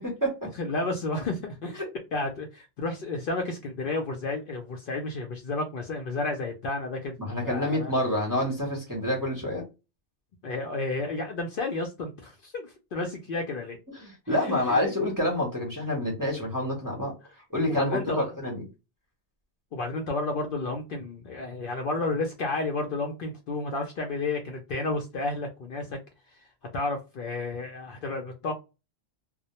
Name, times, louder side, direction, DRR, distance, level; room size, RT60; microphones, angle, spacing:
voice 1, 0.0-0.5 7.2-9.6 14.0-17.1 17.5-18.7, left 1 dB, 20° right, -1 dB, 0.6 m, -28 dB
voice 2, 0.6-1.8 2.1-7.9 10.4-13.8 14.4-14.9 17.7-18.3 19.7-26.0 26.3-26.4 26.7-28.5, left 3 dB, 60° left, 3 dB, 0.6 m, -31 dB
2.1 x 2.1 x 2.8 m, 0.27 s
omnidirectional pair, 1.2 m